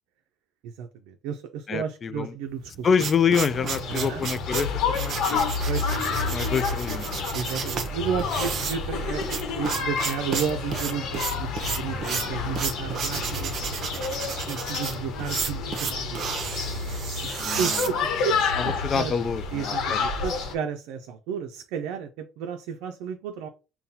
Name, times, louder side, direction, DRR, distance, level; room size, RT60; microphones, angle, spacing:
voice 1, 0.6-2.9 3.9-4.2 5.7-6.3 7.3-13.6 14.2-16.2 17.0-19.1 19.5-23.5, right 7 dB, 85° right, 0.4 m, -33 dB
voice 2, 1.7-2.3 2.8-5.4 6.3-7.3 17.4-17.8 18.6-20.0, left 6 dB, 35° left, 0.3 m, -27 dB
sound 1, 2.6-18.5, right 6 dB, 50° right, 0.7 m, -32 dB
sound 2, 3.5-20.5, left 4 dB, 70° left, 1.0 m, -29 dB
5.4 x 2.2 x 2.7 m
cardioid pair, 115°, 0 cm